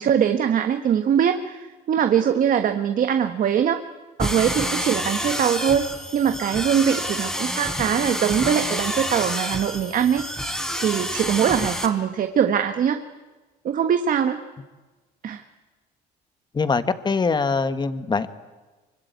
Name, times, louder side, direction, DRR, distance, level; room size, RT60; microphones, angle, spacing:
voice 1, 0.0-3.8 4.2-5.9 6.1-10.2 10.8-13.0 13.6-14.4 15.2-15.4, right 8 dB, 55° right, 7 dB, 1.4 m, -22 dB
sound 1, 4.2-11.9, equal, 5° left, 4.0 m, -28 dB
voice 2, 16.5-18.3, left 4 dB, 25° left, 11 dB, 1.6 m, -23 dB
24.5 x 24.0 x 9.5 m, 1.3 s
cardioid pair, 110°, 17 cm